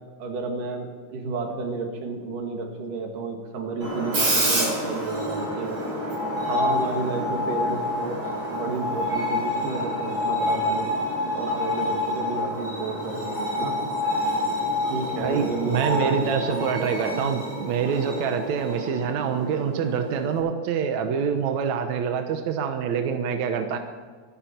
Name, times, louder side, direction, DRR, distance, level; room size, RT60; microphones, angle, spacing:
voice 1, 0.2-5.7 6.5-8.2 8.5-10.9 11.4-13.8 14.9-17.3, right 3 dB, 85° right, 2 dB, 3.6 m, -31 dB
Screech, 3.8-20.4, left 1 dB, 50° right, 6.8 m, -28 dB
voice 2, 15.2-23.8, right 6 dB, 65° right, 6 dB, 2.3 m, -26 dB
25.0 x 11.5 x 4.5 m, 1.5 s
omnidirectional pair, 3.7 m